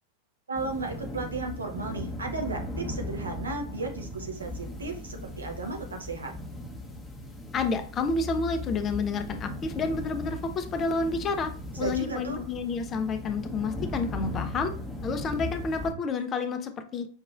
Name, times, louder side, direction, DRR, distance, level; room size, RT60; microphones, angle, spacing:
sound 1, 0.5-15.9, left 1 dB, 10° left, 0.9 m, -38 dB
voice 1, 0.5-6.3 11.7-12.4, right 3 dB, 75° right, 3 dB, 0.9 m, -34 dB
voice 2, 7.5-11.5 11.8-14.7 15.0-17.1, left 4 dB, 25° left, 8 dB, 0.5 m, -29 dB
5.4 x 3.0 x 2.4 m, 0.41 s
figure-of-eight pair, 90°, 0 cm